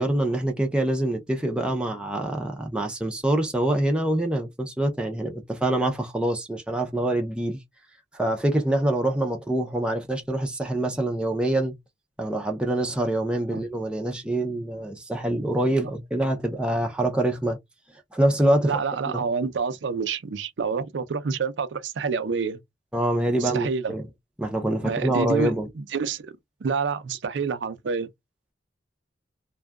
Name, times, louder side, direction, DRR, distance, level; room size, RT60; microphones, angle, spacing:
voice 1, 0.0-7.6 8.1-11.8 12.2-17.6 18.1-18.8 19.1-19.2 22.9-24.1 24.4-25.7, right 1 dB, 5° right, 0.5 m, -25 dB
voice 2, 18.6-22.6 23.4-23.9 24.8-26.3 26.6-28.1, right 5 dB, 85° right, 0.5 m, -28 dB
2.6 x 2.3 x 2.3 m
head